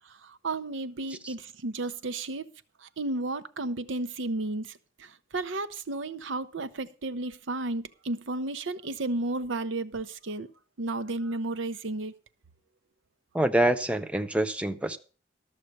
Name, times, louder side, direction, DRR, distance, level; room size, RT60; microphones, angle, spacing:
voice 1, 0.4-2.5 3.0-4.7 5.3-10.5 10.8-12.1, right 2 dB, 75° right, 0.8 m, -32 dB
voice 2, 13.3-15.0, right 1 dB, 5° right, 0.6 m, -26 dB
13.0 x 6.7 x 6.6 m
head